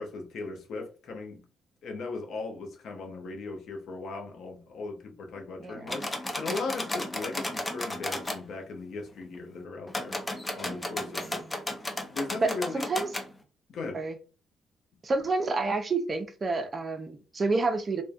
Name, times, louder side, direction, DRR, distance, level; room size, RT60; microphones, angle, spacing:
voice 1, 0.0-1.4 1.8-10.2 10.5-11.5 12.1-12.8 13.7-14.0, left 3 dB, 70° left, 0.6 m, -38 dB
voice 2, 5.6-6.1 10.6-11.4 12.4-13.1 13.9-14.2 15.0-18.0, right 3 dB, 35° right, 0.5 m, -30 dB
sound 1, 5.9-8.4 9.9-13.3, left 1 dB, 15° left, 0.5 m, -34 dB
2.5 x 2.1 x 2.4 m
cardioid pair, 90°, 0 cm